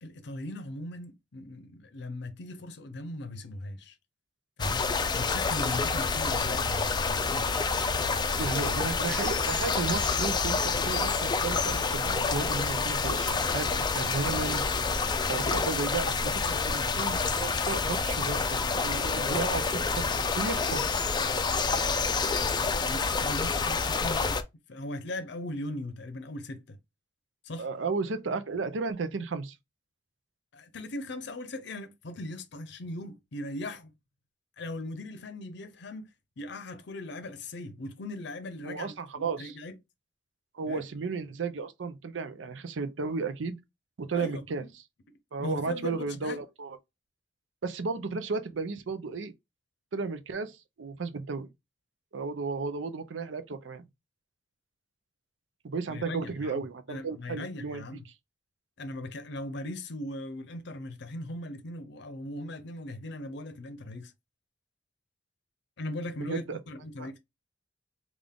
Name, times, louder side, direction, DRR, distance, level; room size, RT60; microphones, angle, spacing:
voice 1, 0.0-4.0 4.6-4.8 5.1-7.5 8.3-8.8 16.4-16.6 22.9-26.8 27.4-27.7 30.5-33.9 34.6-36.1 36.4-39.8 40.7-40.8 44.1-44.7 45.4-46.4 55.9-58.0 58.8-64.1 65.8-67.2, left 1 dB, 65° left, 0.6 m, -39 dB
sound 1, 4.6-24.4, left 4 dB, 25° left, 0.4 m, -28 dB
voice 2, 8.4-14.7 15.3-20.1 20.4-20.9 27.6-29.6 38.7-39.6 40.5-43.6 44.0-44.7 45.3-46.8 47.6-49.3 49.9-51.5 52.1-53.9 55.6-57.8 66.3-66.6 67.0-67.1, right 4 dB, 85° right, 0.5 m, -34 dB
3.7 x 2.4 x 3.5 m
head